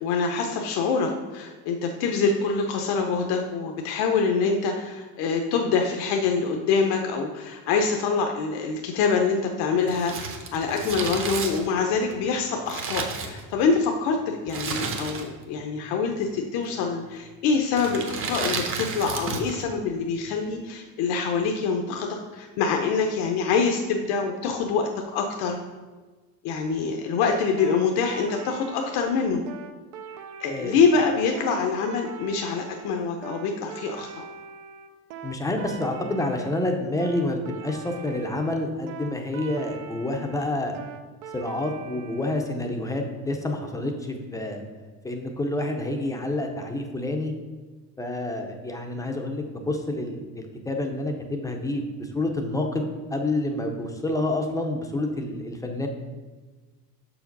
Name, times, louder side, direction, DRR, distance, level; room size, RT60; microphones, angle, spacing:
voice 1, 0.0-25.6 26.4-29.4 30.4-34.2, left 5 dB, 75° left, 3 dB, 0.8 m, -25 dB
Crumpling crinkling, 9.8-13.8 14.5-15.5 15.8-15.9 16.7-17.0 17.7-19.6 19.9-20.0, right 4 dB, 35° right, 0.8 m, -32 dB
sound 1, 27.6-42.4, right 6 dB, 85° right, 0.7 m, -42 dB
voice 2, 35.2-40.7 41.3-44.6 45.0-47.3 48.0-55.9, left 1 dB, 10° left, 3 dB, 0.5 m, -28 dB
6.6 x 4.9 x 5.2 m, 1.3 s
cardioid pair, 170°, 38 cm